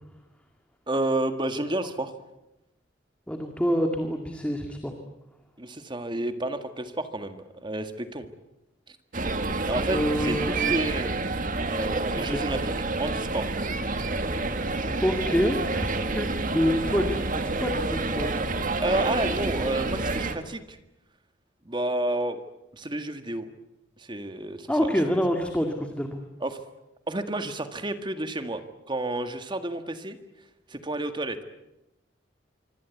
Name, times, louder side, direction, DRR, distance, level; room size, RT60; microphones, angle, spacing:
voice 1, 0.9-2.1 5.6-8.3 8.9-9.0 9.6-11.2 11.6-12.7 13.0-13.5 18.8-20.8 21.7-22.4 22.7-23.5 24.0-24.9 26.4-26.6 27.1-28.6 28.9-30.2 30.7-31.4, right 1 dB, 25° right, 8 dB, 1.8 m, -30 dB
voice 2, 3.3-4.9 9.9-10.7 12.2-12.4 15.0-15.9 16.1-18.4 24.7-26.2, equal, 5° left, 4 dB, 2.0 m, -27 dB
sound 1, 9.1-20.4, right 3 dB, 45° right, 2.0 m, -28 dB
26.0 x 25.0 x 8.4 m, 0.92 s
head